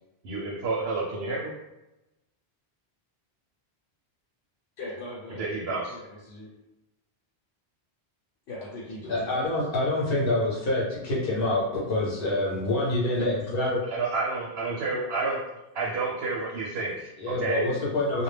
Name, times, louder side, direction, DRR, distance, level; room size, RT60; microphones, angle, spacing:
voice 1, 0.2-1.5 5.4-5.9 13.9-15.4 15.7-17.6, right 3 dB, 75° right, -5 dB, 0.8 m, -30 dB
voice 2, 4.8-5.5 5.9-6.5 8.5-9.4, left 2 dB, 90° left, -6 dB, 1.0 m, -40 dB
voice 3, 9.0-13.8 17.2-18.2, left 2 dB, 65° left, -5 dB, 0.9 m, -26 dB
2.2 x 2.0 x 3.1 m, 0.97 s
omnidirectional pair, 1.1 m